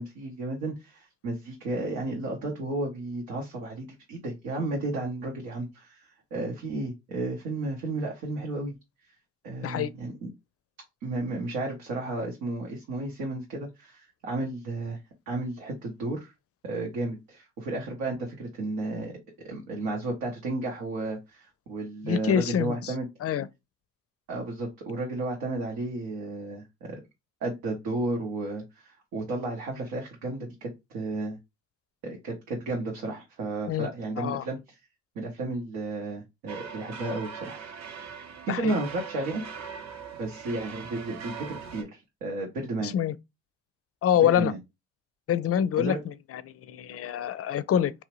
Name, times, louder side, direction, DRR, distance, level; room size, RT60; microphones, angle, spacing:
voice 1, 0.0-8.7 9.4-10.3 11.0-15.0 15.3-16.3 16.6-19.1 19.4-23.1 24.3-27.0 27.4-31.4 32.0-34.6 35.2-37.6 38.5-39.4 40.2-42.9 44.2-44.6 45.8-46.0, right 2 dB, 85° right, 0.8 m, -33 dB
voice 2, 22.0-22.9 23.2-23.5 33.7-33.9 34.2-34.4 38.5-38.7 42.8-43.1 44.0-44.5 45.3-46.0 46.6-47.9, left 9 dB, 45° left, 0.4 m, -25 dB
sound 1, 36.5-41.8, right 6 dB, 55° right, 0.7 m, -41 dB
2.7 x 2.0 x 3.0 m
supercardioid pair, 50°, 34 cm